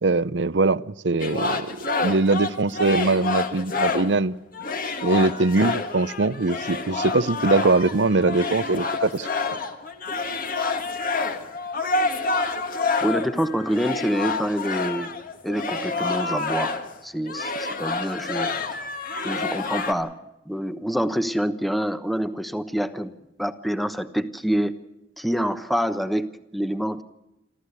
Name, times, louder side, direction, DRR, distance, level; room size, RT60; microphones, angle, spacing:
voice 1, 0.0-4.3 5.0-9.3, right 3 dB, 70° right, 17 dB, 0.7 m, -22 dB
sound 1, 1.2-4.2 4.5-17.0 17.3-19.9, left 3 dB, 50° left, 2.0 m, -28 dB
voice 2, 13.0-15.2 15.4-16.7 17.0-18.5 19.2-20.2 20.5-24.7 25.2-27.0, equal, ahead, 10 dB, 1.0 m, -26 dB
27.5 x 13.5 x 8.3 m, 0.89 s
head